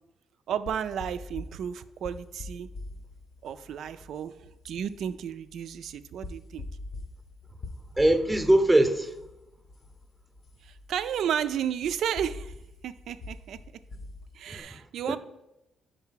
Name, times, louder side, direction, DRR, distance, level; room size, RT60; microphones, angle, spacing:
voice 1, 0.5-2.7 3.4-6.7 10.6-12.5 12.8-13.6 14.3-15.2, right 9 dB, 75° right, 12 dB, 0.3 m, -33 dB
sound 1, 0.7-14.6, left 2 dB, 55° left, 0.8 m, -45 dB
voice 2, 7.9-9.2 14.5-15.2, right 1 dB, 10° right, 8 dB, 0.7 m, -23 dB
5.3 x 4.5 x 5.7 m, 0.91 s
cardioid pair, 90°, 0 cm